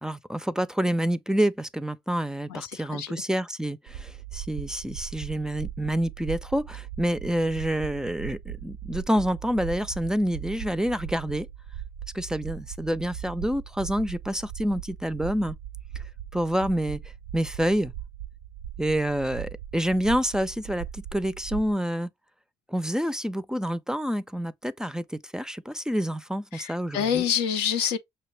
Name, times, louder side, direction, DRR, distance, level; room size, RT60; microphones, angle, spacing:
voice 1, 0.0-11.5 12.1-15.6 16.0-16.1 16.3-17.0 17.3-17.9 18.8-22.1 22.7-27.2, equal, 5° right, 0.4 m, -28 dB
voice 2, 2.5-3.1 26.5-28.0, left 8 dB, 85° left, 0.5 m, -27 dB
sound 1, 3.9-21.7, right 10 dB, 80° right, 0.4 m, -39 dB
5.8 x 2.1 x 3.1 m
hypercardioid pair, 50°, 13 cm